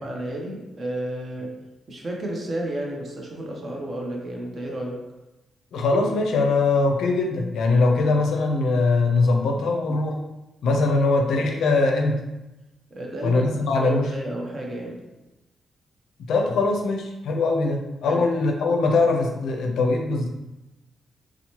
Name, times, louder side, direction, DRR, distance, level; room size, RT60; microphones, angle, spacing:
voice 1, 0.0-1.6 1.9-5.0 11.0-11.1 12.9-13.4 13.8-15.0 18.1-18.2, right 1 dB, 35° right, 0 dB, 0.5 m, -32 dB
voice 2, 5.7-10.2 10.6-12.2 13.2-14.1 16.3-20.3, left 3 dB, 85° left, 2 dB, 0.4 m, -21 dB
2.8 x 2.0 x 2.9 m, 1.0 s
wide cardioid pair, 145°, 0 cm